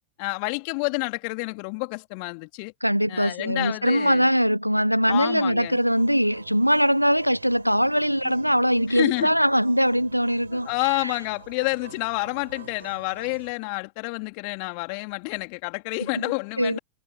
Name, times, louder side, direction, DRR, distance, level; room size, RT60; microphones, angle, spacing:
voice 1, 0.2-2.7 3.1-4.3 5.1-5.8 8.9-9.4 10.5-16.8, left 40 dB or more, 45° left, 3.0 m, -29 dB
voice 2, 2.8-10.7 11.0-11.1 16.6-16.8, equal, 90° right, 0.6 m, -21 dB
sound 1, 5.6-13.5, right 7 dB, 70° right, 6.8 m, -47 dB
figure-of-eight pair, 90°, 0 cm